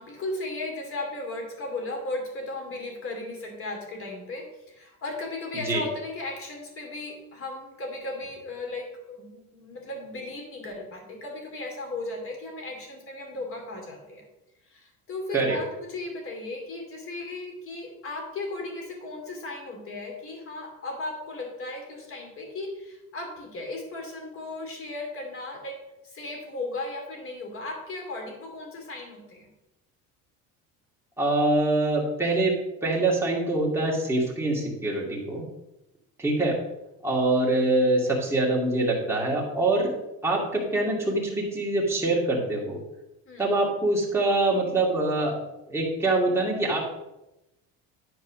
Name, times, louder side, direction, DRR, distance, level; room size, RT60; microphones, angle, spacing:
voice 1, 0.0-14.2 14.7-25.8 26.0-29.5 43.3-43.6, left 2 dB, 40° left, 2 dB, 2.9 m, -36 dB
voice 2, 31.2-35.5 36.2-36.6 37.0-39.9 40.2-42.8 43.4-45.4 45.7-46.8, right 2 dB, 5° right, -4 dB, 2.5 m, -24 dB
11.0 x 4.7 x 6.2 m, 0.93 s
cardioid pair, 150°, 34 cm